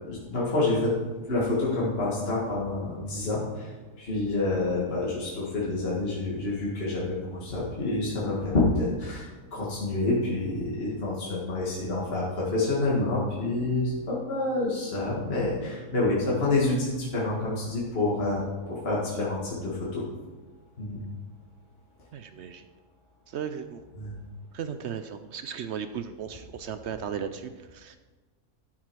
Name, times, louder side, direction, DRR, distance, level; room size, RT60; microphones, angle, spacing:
voice 1, 0.1-0.9 1.3-3.7 4.0-9.3 9.5-18.4 18.7-20.0 20.8-21.0 24.0-24.1, left 2 dB, 40° left, -6 dB, 2.0 m, -28 dB
voice 2, 22.1-22.7 23.3-23.8 24.5-28.0, right 7 dB, 70° right, 10 dB, 0.7 m, -36 dB
13.0 x 5.9 x 4.6 m, 1.3 s
omnidirectional pair, 1.6 m